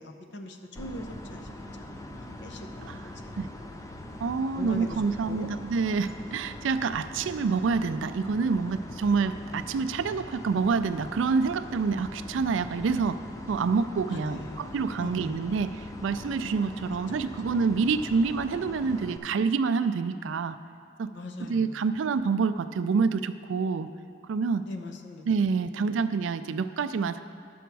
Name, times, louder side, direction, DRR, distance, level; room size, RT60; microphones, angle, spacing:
voice 1, 0.0-1.5 1.8-2.9 4.6-5.5 14.1-15.4 21.1-21.8 24.7-25.3 25.9-26.1, left 2 dB, 60° left, 5 dB, 0.7 m, -41 dB
sound 1, 0.7-19.2, left 1 dB, 15° left, 0.4 m, -42 dB
voice 2, 4.2-13.2 13.5-20.6 21.0-21.1 21.4-23.9 24.3-24.7 25.3-27.2, right 5 dB, 70° right, 11 dB, 0.4 m, -27 dB
10.0 x 7.1 x 4.6 m, 2.4 s
head